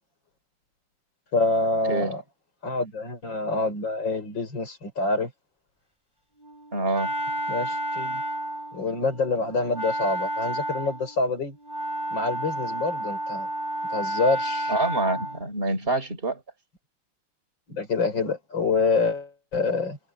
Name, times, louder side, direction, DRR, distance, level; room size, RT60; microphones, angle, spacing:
voice 1, 1.3-2.2 2.6-5.3 7.5-8.2 8.7-11.6 12.1-13.5 13.9-14.7 17.7-20.0, left 3 dB, 55° left, 6.1 m, -26 dB
Wind instrument woodwind instrument, 6.4-15.5, right 1 dB, 10° left, 7.5 m, -31 dB
voice 2, 6.7-7.1 14.7-16.4, right 2 dB, 25° right, 4.2 m, -26 dB
omnidirectional pair, 2.4 m